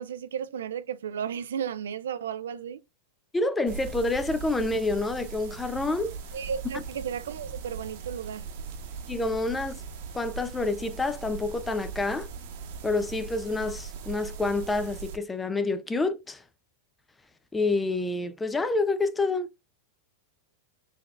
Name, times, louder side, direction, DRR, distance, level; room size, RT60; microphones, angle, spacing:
voice 1, 0.0-2.8 6.3-8.5, right 8 dB, 85° right, 0.4 m, -34 dB
voice 2, 3.3-6.1 9.1-9.8 10.1-12.3 12.8-16.4 17.5-19.5, left 3 dB, 10° left, 0.4 m, -28 dB
sound 1, 3.7-15.2, right 5 dB, 60° right, 0.9 m, -40 dB
4.0 x 3.2 x 2.4 m
hypercardioid pair, 120°, 0 cm